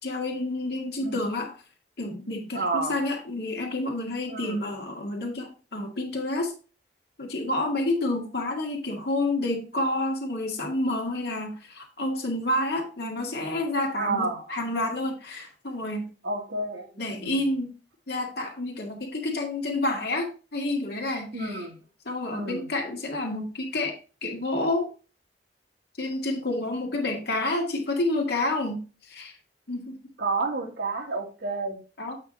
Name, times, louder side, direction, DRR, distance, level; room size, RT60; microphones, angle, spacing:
voice 1, 0.0-1.5 2.0-6.5 7.2-16.1 17.0-17.7 18.1-21.7 22.1-24.9 26.0-29.4 29.7-29.9 32.0-32.2, left 2 dB, 65° left, 1 dB, 2.0 m, -29 dB
voice 2, 2.5-3.0 4.3-4.6 13.9-14.5 16.2-17.4 21.3-21.8 22.3-22.7 30.2-31.8, right 3 dB, 75° right, 1 dB, 2.1 m, -30 dB
8.3 x 4.7 x 3.9 m, 0.34 s
head